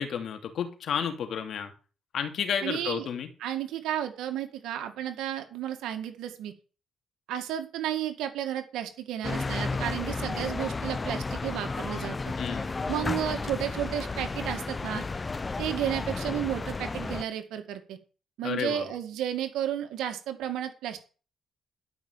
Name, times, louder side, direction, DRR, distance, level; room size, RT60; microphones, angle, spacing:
voice 1, 0.0-1.7 2.1-3.3 12.4-12.7 18.4-18.9, left 7 dB, 65° left, 6 dB, 2.8 m, -31 dB
voice 2, 2.6-3.1 3.4-6.5 7.3-12.3 12.9-15.1 15.6-18.0 18.4-21.0, right 11 dB, 85° right, 7 dB, 2.1 m, -32 dB
sound 1, 9.2-17.2, left 3 dB, 25° left, 0.7 m, -33 dB
12.0 x 6.1 x 9.2 m, 0.36 s
cardioid pair, 90°, 0 cm